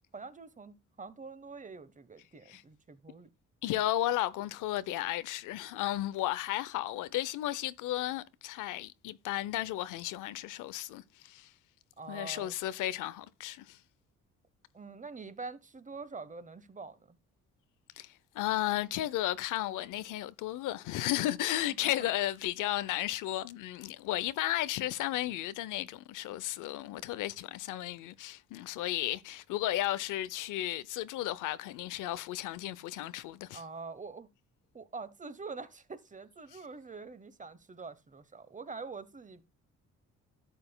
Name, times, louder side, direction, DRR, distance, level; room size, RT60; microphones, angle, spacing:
voice 1, 0.1-3.3 12.0-12.6 14.7-17.2 21.7-22.1 33.5-34.3 34.7-39.4, right 4 dB, 25° right, 1.1 m, -45 dB
voice 2, 3.6-11.5 12.1-13.8 18.0-33.6, left 14 dB, 90° left, 0.7 m, -34 dB
12.5 x 7.7 x 2.2 m
cardioid pair, 90°, 30 cm